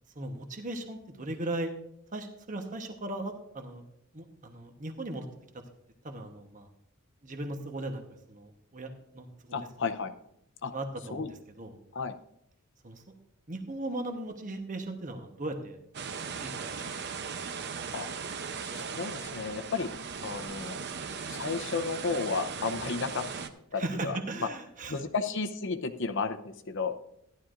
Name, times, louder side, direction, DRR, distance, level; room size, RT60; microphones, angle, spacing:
voice 1, 0.1-1.7 2.1-3.8 4.1-5.3 6.0-6.7 7.2-8.0 8.3-9.6 10.7-11.7 12.8-13.0 13.5-15.8 16.4-16.8 23.8-25.0, right 2 dB, 35° right, 5 dB, 1.1 m, -37 dB
voice 2, 9.5-10.1 10.6-10.7 11.1-11.3 11.9-12.1 17.9-18.1 18.6-19.9 20.2-20.8 21.3-23.3 23.7-24.5 24.9-27.0, left 4 dB, 60° left, 9 dB, 0.7 m, -33 dB
sound 1, 15.9-23.5, right 5 dB, 50° right, 0.7 m, -38 dB
14.5 x 11.0 x 2.5 m, 0.75 s
head